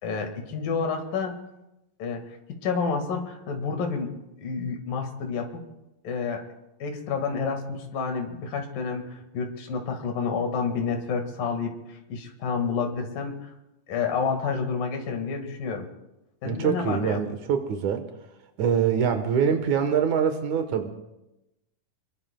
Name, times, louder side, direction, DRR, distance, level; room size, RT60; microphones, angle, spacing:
voice 1, 0.0-1.3 2.0-2.4 2.6-5.6 6.0-6.5 6.8-13.5 13.9-15.9 16.4-17.2, left 5 dB, 75° left, 3 dB, 3.6 m, -29 dB
voice 2, 16.4-18.0 18.6-20.9, right 7 dB, 65° right, 6 dB, 2.5 m, -24 dB
27.5 x 22.5 x 2.3 m, 0.94 s
omnidirectional pair, 4.0 m